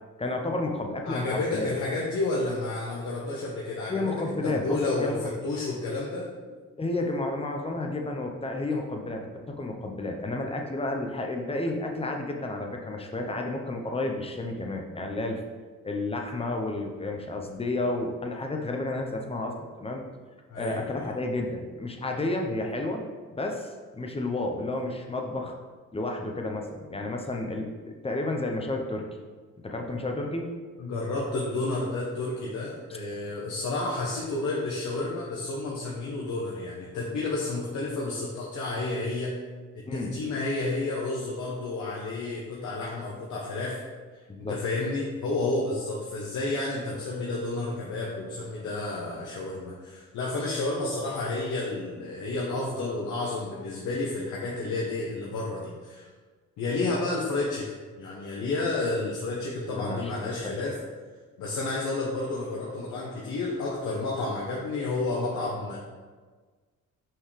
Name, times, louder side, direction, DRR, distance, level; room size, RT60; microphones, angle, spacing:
voice 1, 0.2-1.7 3.9-5.2 6.1-6.3 6.8-15.4 15.8-20.0 20.5-23.0 23.3-25.5 25.9-29.0 29.6-30.5 39.9-40.1 44.3-44.6 59.7-60.1 60.4-60.5, left 2 dB, 20° left, 2 dB, 0.9 m, -31 dB
voice 2, 1.0-4.1 4.4-6.3 20.5-21.1 30.8-39.4 39.9-43.8 44.4-56.1 56.6-57.7 58.0-60.8 61.4-65.8, left 2 dB, 75° left, -3 dB, 1.0 m, -31 dB
5.7 x 5.4 x 3.3 m, 1.4 s
cardioid pair, 90°, 30 cm